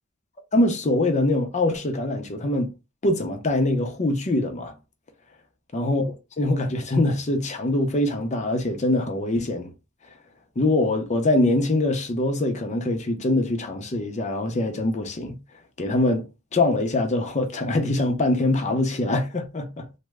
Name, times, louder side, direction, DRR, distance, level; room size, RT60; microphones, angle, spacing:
voice 1, 0.5-2.7 3.0-4.7 5.7-9.7 10.6-15.4 15.8-19.9, left 2 dB, 35° left, 0.6 m, -23 dB
3.1 x 2.1 x 3.5 m
head